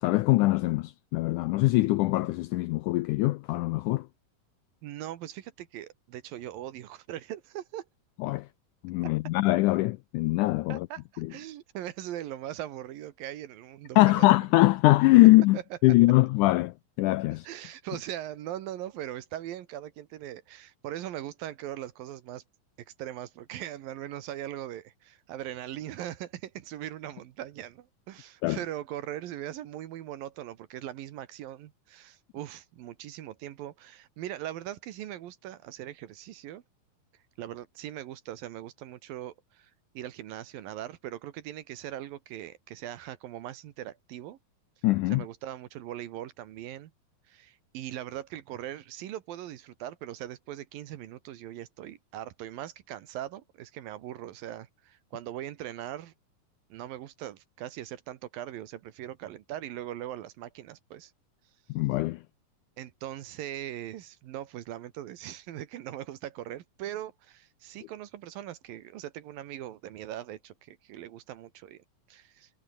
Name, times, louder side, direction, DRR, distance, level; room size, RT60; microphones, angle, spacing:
voice 1, 0.0-4.1 8.2-8.5 8.8-10.9 11.2-11.3 14.0-17.5 28.4-28.6 44.8-45.2 61.7-62.2, left 19 dB, 85° left, 1.8 m, -22 dB
voice 2, 4.8-7.9 10.7-14.3 15.5-16.0 17.4-22.4 22.9-36.6 37.4-44.4 45.1-46.9 47.3-56.1 56.7-61.1 62.8-72.5, right 12 dB, 80° right, 3.0 m, -40 dB
omnidirectional pair, 4.1 m